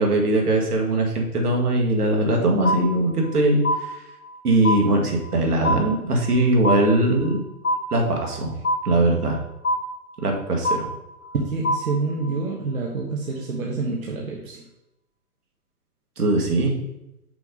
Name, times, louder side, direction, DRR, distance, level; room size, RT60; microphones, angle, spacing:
voice 1, 0.0-4.0 4.4-7.4 7.9-8.5 8.8-9.4 10.2-10.9 16.2-16.7, right 2 dB, 80° right, 1 dB, 1.9 m, -21 dB
sound 1, 2.6-3.4 3.6-4.4 4.6-5.4 5.6-6.4 6.6-7.4 7.6-8.4 8.6-9.4 9.6-10.4 10.6-11.4 11.6-12.4, left 1 dB, 55° left, 2.5 m, -25 dB
voice 2, 11.3-14.6, right 3 dB, 60° right, -2 dB, 1.2 m, -27 dB
5.8 x 4.0 x 5.2 m, 0.87 s
hypercardioid pair, 180°, 45 cm